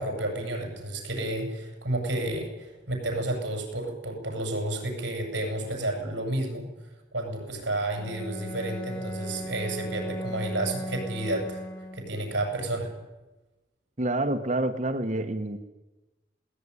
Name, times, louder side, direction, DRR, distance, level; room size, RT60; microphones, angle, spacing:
voice 1, 0.0-6.7 7.1-11.6 11.9-12.9, right 1 dB, 65° right, 3 dB, 7.5 m, -31 dB
Bowed string instrument, 7.9-12.3, equal, 25° left, 2.2 m, -37 dB
voice 2, 14.0-15.6, right 2 dB, 35° right, 6 dB, 1.3 m, -27 dB
20.5 x 18.5 x 9.9 m, 1.1 s
head